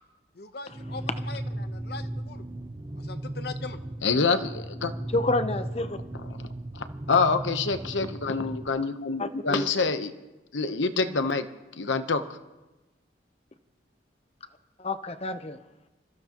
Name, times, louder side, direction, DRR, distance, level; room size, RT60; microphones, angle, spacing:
voice 1, 0.3-2.4 3.0-3.8, left 4 dB, 60° left, 9 dB, 0.9 m, -41 dB
sound 1, 0.7-8.7, right 1 dB, 25° right, 0.7 m, -36 dB
voice 2, 4.0-4.9 6.7-10.1 10.5-11.5 11.8-12.2, left 4 dB, 85° left, 9 dB, 0.9 m, -26 dB
voice 3, 5.1-6.0 9.2-9.7 14.8-15.6, left 2 dB, 35° left, 10 dB, 0.8 m, -29 dB
27.5 x 14.5 x 3.0 m, 1.1 s
head